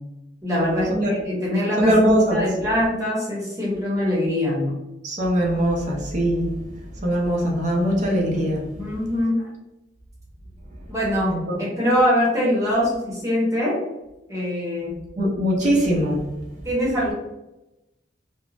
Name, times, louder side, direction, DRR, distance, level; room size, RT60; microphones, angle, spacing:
voice 1, 0.4-1.9 2.3-4.7 8.8-9.5 10.9-13.8 14.3-14.9 16.6-17.1, equal, 20° right, -6 dB, 0.9 m, -23 dB
voice 2, 1.8-2.4 5.0-6.6 6.9-8.7 11.3-11.6 15.2-16.4, equal, 40° right, -1 dB, 0.5 m, -21 dB
2.4 x 2.0 x 3.1 m, 0.96 s
head